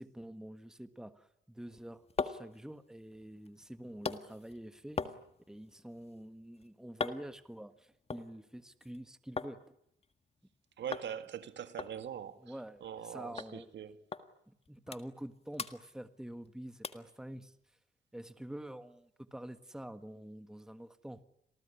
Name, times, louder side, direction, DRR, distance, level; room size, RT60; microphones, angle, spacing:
voice 1, 0.0-5.0 5.5-9.6 12.4-13.7 14.5-17.5 18.1-21.2, right 1 dB, 5° right, 1.5 m, -47 dB
sound 1, 1.7-9.6 9.9-10.5 10.9-11.1 11.4-11.5 11.8-13.1 13.4-13.5 14.1-14.3 14.6-15.3 15.5-16.5 16.8-17.1 17.6-17.7, left 4 dB, 30° left, 1.8 m, -42 dB
voice 2, 10.8-12.5 12.8-14.0, right 9 dB, 65° right, 2.0 m, -42 dB
28.0 x 19.5 x 10.0 m
cardioid pair, 90°, 20 cm